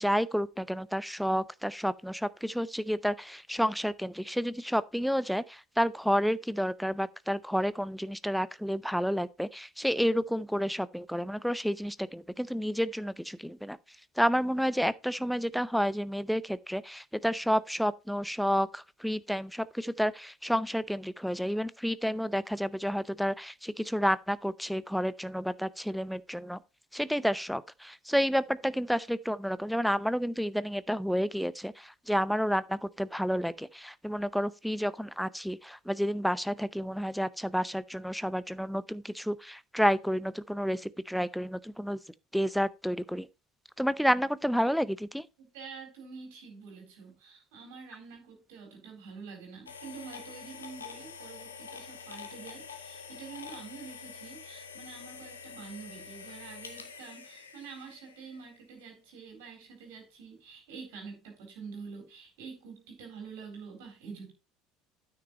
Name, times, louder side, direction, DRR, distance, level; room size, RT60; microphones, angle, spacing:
voice 1, 0.0-13.8 14.2-26.6 26.9-42.0 42.3-43.3 43.8-45.3, equal, ahead, 0.5 m, -30 dB
voice 2, 45.4-64.3, right 5 dB, 60° right, 4.0 m, -47 dB
sound 1, 49.7-58.6, left 6 dB, 75° left, 1.2 m, -46 dB
9.5 x 6.1 x 4.1 m
figure-of-eight pair, 65°, 0 cm